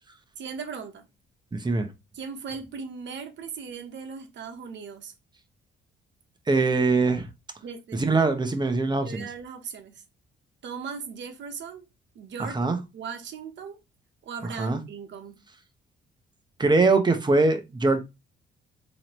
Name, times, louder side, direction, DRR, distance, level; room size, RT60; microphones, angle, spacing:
voice 1, 0.4-1.1 2.1-5.1 7.6-8.0 9.0-10.0 10.6-11.8 12.1-12.6 12.9-13.8 14.2-15.4, right 6 dB, 65° right, 1.0 m, -38 dB
voice 2, 1.5-1.9 6.5-7.3 8.0-9.3 12.5-12.8 14.6-14.8 16.6-18.0, right 3 dB, 20° right, 0.9 m, -22 dB
3.8 x 3.0 x 3.0 m
cardioid pair, 90°, 20 cm